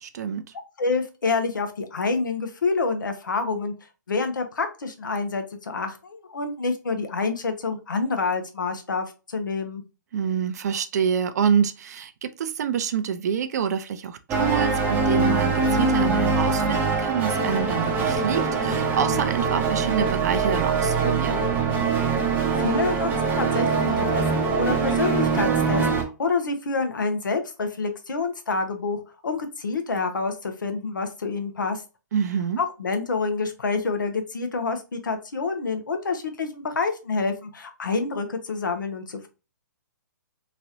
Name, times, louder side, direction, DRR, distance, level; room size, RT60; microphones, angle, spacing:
voice 1, 0.0-0.4 10.1-21.4 32.1-32.6, right 7 dB, 60° right, 0.5 m, -27 dB
voice 2, 0.8-3.7 4.1-9.8 22.6-25.9 26.2-31.8 32.6-39.3, left 4 dB, 85° left, 0.8 m, -27 dB
sound 1, 14.3-26.0, right 4 dB, 20° right, 0.6 m, -23 dB
3.0 x 2.5 x 2.7 m
hypercardioid pair, 135°, 10 cm